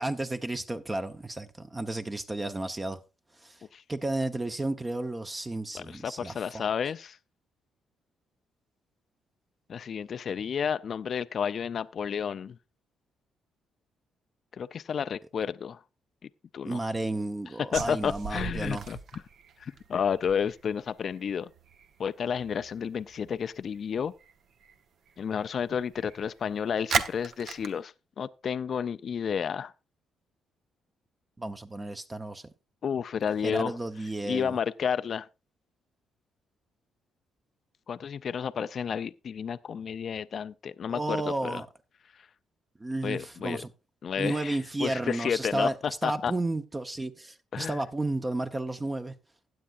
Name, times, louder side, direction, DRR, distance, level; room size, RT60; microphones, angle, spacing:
voice 1, 0.0-3.0 3.4-3.6 3.9-6.7 16.6-18.9 31.4-32.5 33.4-34.6 40.9-41.7 42.8-43.7 44.2-49.1, right 2 dB, 20° right, 0.8 m, -32 dB
voice 2, 5.7-7.2 9.7-12.6 14.6-15.8 16.5-16.8 17.7-19.0 19.6-21.5 22.0-24.1 25.2-29.7 32.8-33.7 34.3-35.3 37.9-41.6 43.0-43.6 44.0-46.3 47.5-47.8, left 7 dB, 55° left, 0.4 m, -31 dB
sound 1, 17.7-24.3 24.6-24.8 25.1-26.5 26.9-27.7, right 6 dB, 65° right, 0.9 m, -37 dB
16.0 x 9.2 x 2.5 m
cardioid pair, 90°, 0 cm